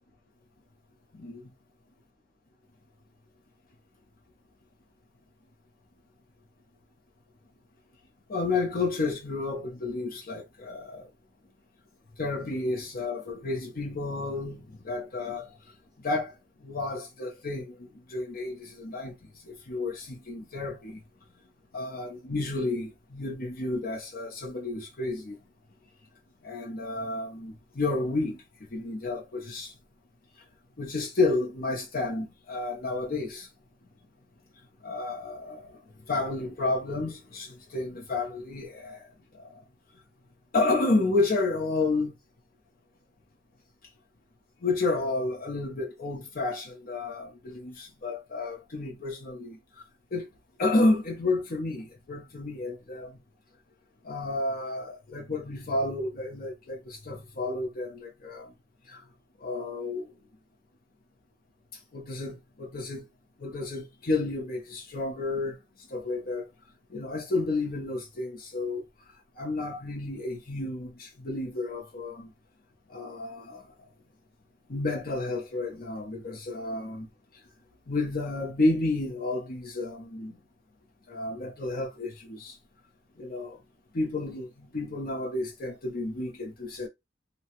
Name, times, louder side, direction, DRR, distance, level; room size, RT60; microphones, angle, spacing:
voice 1, 1.1-1.5 8.3-11.1 12.2-15.5 16.0-21.0 21.7-25.4 26.4-28.4 28.7-29.7 30.8-33.5 34.8-39.6 40.5-42.1 44.6-49.6 50.1-50.3 50.6-53.2 54.0-58.5 58.9-59.0 59.4-60.1 61.9-63.0 63.4-65.6 65.9-66.5 66.9-68.8 69.4-72.3 72.9-73.6 74.7-77.1 77.9-80.4 81.1-82.6 83.2-83.6 83.9-86.9, left 2 dB, 50° left, 0.8 m, -31 dB
2.9 x 2.1 x 2.9 m
head